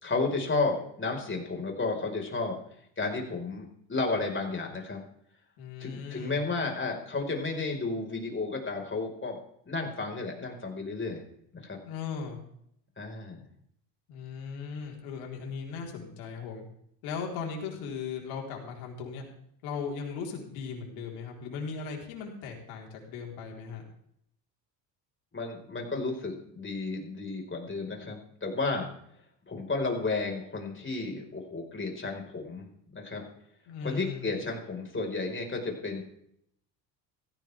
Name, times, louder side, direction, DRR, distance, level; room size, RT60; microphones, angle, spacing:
voice 1, 0.0-2.6 3.0-5.0 5.8-9.4 9.7-11.2 11.5-11.8 13.0-13.4 25.3-28.9 29.5-32.7 32.9-33.2 33.8-36.0, left 3 dB, 25° left, 1 dB, 5.3 m, -32 dB
voice 2, 5.6-6.4 11.8-12.4 14.1-16.6 17.0-19.3 19.6-23.8 33.7-34.3, left 5 dB, 75° left, 0 dB, 4.6 m, -38 dB
16.5 x 15.0 x 3.7 m, 0.70 s
supercardioid pair, 80°, 50 cm